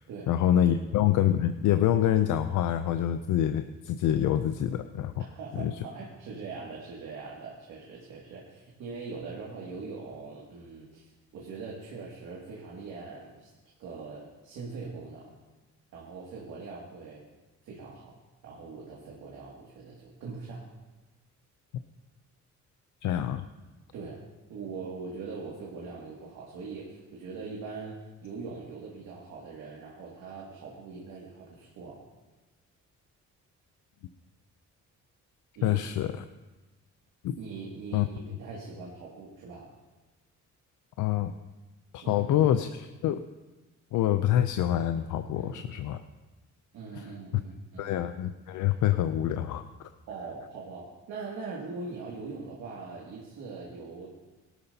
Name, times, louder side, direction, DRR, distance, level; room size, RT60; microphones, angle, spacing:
voice 1, 0.3-5.2 5.6-5.7 23.0-23.4 35.6-36.2 37.2-37.4 37.9-38.1 41.0-41.3 41.9-43.2 43.9-46.0 47.0-47.1 47.8-49.6, left 11 dB, 80° left, 9 dB, 0.6 m, -26 dB
voice 2, 5.2-13.5 13.8-15.3 15.9-17.2 17.6-18.2 18.4-20.6 23.9-24.2 24.5-27.9 28.2-32.0 35.6-35.8 37.4-39.7 42.0-42.5 45.3-45.7 46.7-47.9 50.1-54.2, right 4 dB, 90° right, -4 dB, 2.4 m, -42 dB
18.0 x 12.0 x 2.8 m, 1.1 s
cardioid pair, 90°, 30 cm